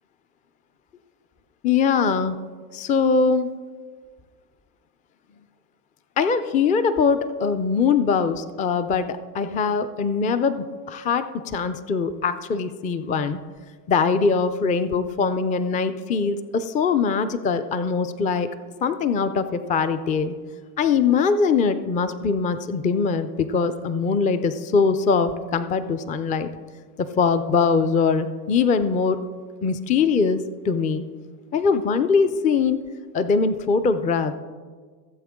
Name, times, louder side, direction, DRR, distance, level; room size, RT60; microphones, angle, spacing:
voice 1, 1.6-2.4 2.7-3.5 6.2-13.4 13.9-18.5 18.8-20.4 20.8-26.5 27.0-29.2 29.6-31.0 31.5-32.8 33.1-34.3, left 5 dB, 15° left, 11 dB, 0.4 m, -22 dB
16.5 x 7.7 x 3.6 m, 1.5 s
hypercardioid pair, 100°, 49 cm